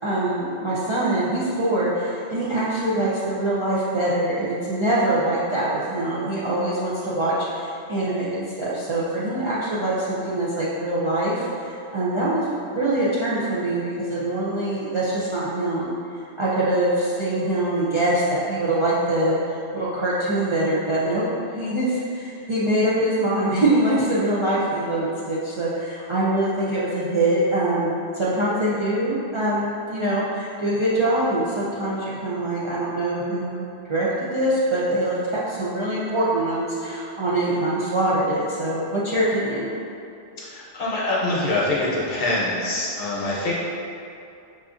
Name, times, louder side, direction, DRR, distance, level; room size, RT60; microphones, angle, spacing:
voice 1, 0.0-15.9 16.4-39.7, right 1 dB, 45° right, -10 dB, 0.4 m, -24 dB
voice 2, 40.4-43.5, left 2 dB, 60° left, -6 dB, 0.9 m, -24 dB
5.5 x 2.5 x 2.4 m, 2.6 s
omnidirectional pair, 1.1 m